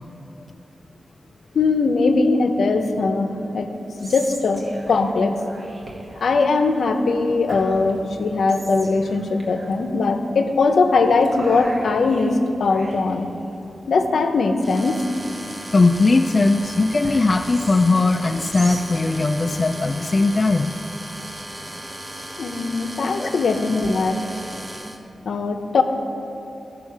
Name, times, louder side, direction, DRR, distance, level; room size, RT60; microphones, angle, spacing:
voice 1, 1.5-3.7 4.0-5.4 6.2-13.3 13.9-15.0 22.4-24.2 25.2-25.8, left 3 dB, 75° left, 7 dB, 0.7 m, -20 dB
Whispering, 3.7-21.3, right 1 dB, 35° right, 1.3 m, -41 dB
sound 1, 14.6-25.0, right 1 dB, 15° right, 0.6 m, -36 dB
voice 2, 15.7-20.7 23.2-23.3, left 3 dB, 30° left, 5 dB, 0.3 m, -19 dB
15.0 x 6.3 x 4.7 m, 2.9 s
wide cardioid pair, 165°, 0 cm